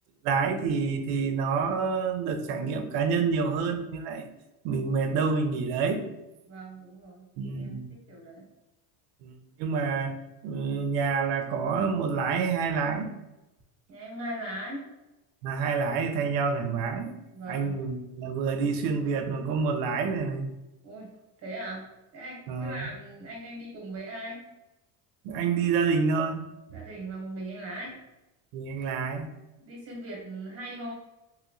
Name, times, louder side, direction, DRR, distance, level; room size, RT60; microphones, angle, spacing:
voice 1, 0.2-4.3 4.6-6.1 7.4-7.9 9.2-10.2 10.4-13.1 15.4-17.1 17.5-20.5 22.5-22.8 25.2-26.4 28.5-29.3, right 5 dB, 65° right, 7 dB, 0.5 m, -28 dB
voice 2, 6.5-7.3 7.5-8.5 13.9-14.9 17.3-17.8 20.8-21.1 21.4-21.8 22.1-24.4 26.7-28.0 29.6-30.9, right 1 dB, 30° right, -1 dB, 1.0 m, -39 dB
3.0 x 2.9 x 2.4 m, 0.98 s
cardioid pair, 165°, 48 cm